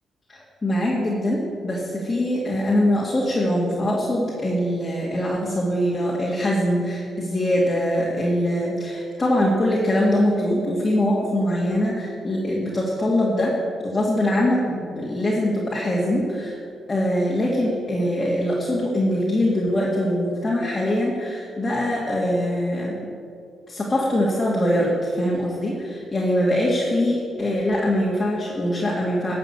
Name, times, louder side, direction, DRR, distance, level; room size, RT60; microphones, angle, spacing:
voice 1, 0.3-13.5 13.8-16.6 16.9-23.1 23.7-29.3, left 1 dB, 30° left, -5 dB, 2.3 m, -23 dB
12.0 x 6.7 x 7.1 m, 2.5 s
supercardioid pair, 50°, 0 cm